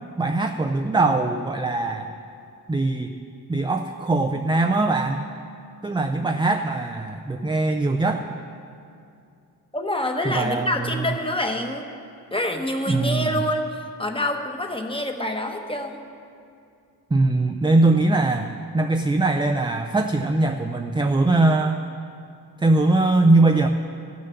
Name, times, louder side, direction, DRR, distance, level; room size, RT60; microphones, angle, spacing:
voice 1, 0.2-2.1 2.7-3.1 3.5-5.2 5.8-8.3 10.2-11.1 12.9-13.4 17.1-18.5 18.7-21.8 22.6-23.7, right 2 dB, 10° right, 5 dB, 0.4 m, -21 dB
voice 2, 9.7-11.9 12.3-16.0, left 1 dB, 15° left, 4 dB, 1.1 m, -26 dB
15.0 x 6.6 x 7.0 m, 2.5 s
wide cardioid pair, 115°, 39 cm